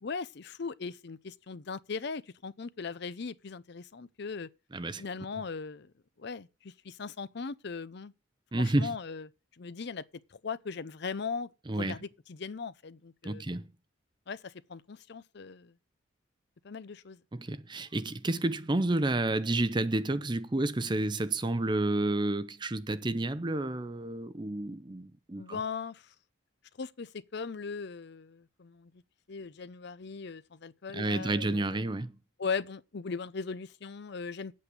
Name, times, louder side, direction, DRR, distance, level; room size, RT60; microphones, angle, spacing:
voice 1, 0.0-4.5 4.9-5.9 6.2-8.1 8.6-9.3 9.6-10.0 10.3-11.5 11.8-13.4 14.3-15.7 16.6-17.2 25.4-26.1 26.8-28.9 29.3-31.8 32.4-34.5, left 5 dB, 55° left, 0.5 m, -39 dB
voice 2, 4.7-5.0 8.5-9.0 11.7-12.0 13.2-13.7 17.3-25.6 30.9-32.1, right 2 dB, 20° right, 0.6 m, -30 dB
9.6 x 8.5 x 6.8 m
head